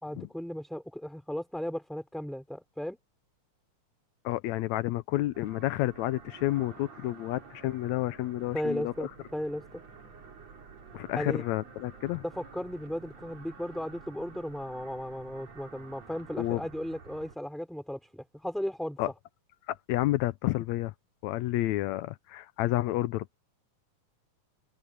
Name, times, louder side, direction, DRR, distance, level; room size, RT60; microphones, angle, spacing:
voice 1, 0.0-3.0 8.5-9.8 11.1-11.4 12.1-19.0, equal, ahead, 5.3 m, -36 dB
voice 2, 4.3-9.1 10.9-12.2 16.4-16.6 19.0-19.1 19.7-20.9 21.2-23.4, left 16 dB, 80° left, 1.7 m, -30 dB
sound 1, 5.3-17.4, right 5 dB, 55° right, 4.0 m, -50 dB
open air
omnidirectional pair, 3.6 m